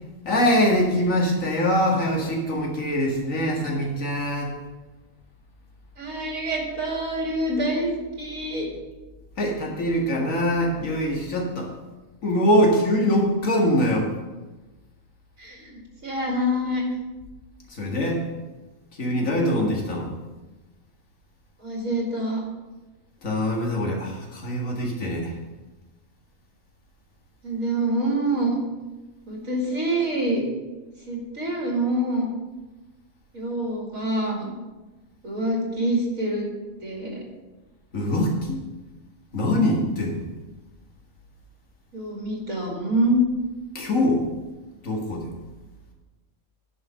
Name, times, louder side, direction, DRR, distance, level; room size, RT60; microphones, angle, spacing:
voice 1, 0.2-4.5 9.4-11.7 12.2-14.1 17.7-18.2 18.9-20.1 23.2-25.4 37.9-38.6 39.3-40.2 43.7-44.3 44.8-45.3, equal, 65° left, -1 dB, 2.2 m, -23 dB
voice 2, 6.0-7.9 8.2-8.7 15.4-15.7 16.0-16.8 21.6-22.4 27.4-28.6 29.3-30.4 31.1-32.3 33.3-34.5 35.2-36.5 36.8-37.2 41.9-43.2, right 1 dB, 70° right, -2 dB, 2.8 m, -26 dB
10.0 x 5.5 x 5.8 m, 1.2 s
omnidirectional pair, 1.5 m